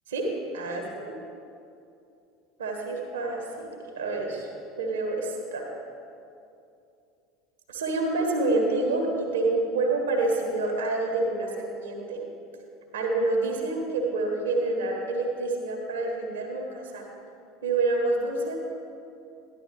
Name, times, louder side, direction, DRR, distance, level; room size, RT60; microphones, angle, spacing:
voice 1, 0.1-1.0 2.6-3.7 3.9-4.5 4.8-5.7 7.7-12.2 12.9-17.0 17.6-18.6, right 2 dB, 70° right, 1 dB, 1.6 m, -27 dB
13.0 x 11.0 x 3.2 m, 2.6 s
figure-of-eight pair, 70°, 0 cm